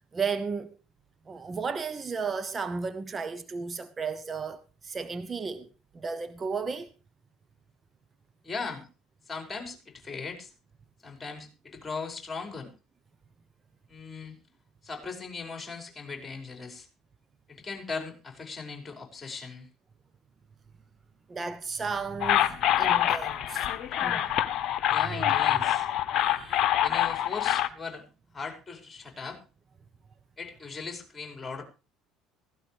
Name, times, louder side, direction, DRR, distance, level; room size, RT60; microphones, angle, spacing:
voice 1, 0.1-0.7 1.3-5.7 5.9-6.9 21.3-23.7 24.0-24.4 26.1-26.8, right 5 dB, 30° right, 1.0 m, -34 dB
voice 2, 8.4-8.9 9.3-10.5 11.0-12.7 13.9-14.3 14.8-16.9 17.5-19.7 24.9-25.9 26.8-28.0 28.3-29.4 30.4-31.6, left 4 dB, 20° left, 5.8 m, -38 dB
sound 1, 22.2-27.7, left 12 dB, 55° left, 1.1 m, -25 dB
16.0 x 16.0 x 3.4 m
hypercardioid pair, 65°, 0 cm